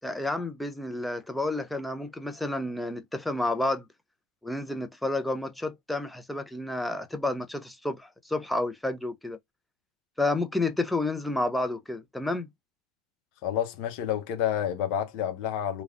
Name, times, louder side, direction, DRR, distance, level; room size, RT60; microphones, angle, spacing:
voice 1, 0.0-3.8 4.4-9.4 10.2-12.5, left 2 dB, 5° left, 0.5 m, -30 dB
voice 2, 13.4-15.8, left 10 dB, 60° left, 0.8 m, -29 dB
3.2 x 2.4 x 2.4 m
hypercardioid pair, 100°, 0 cm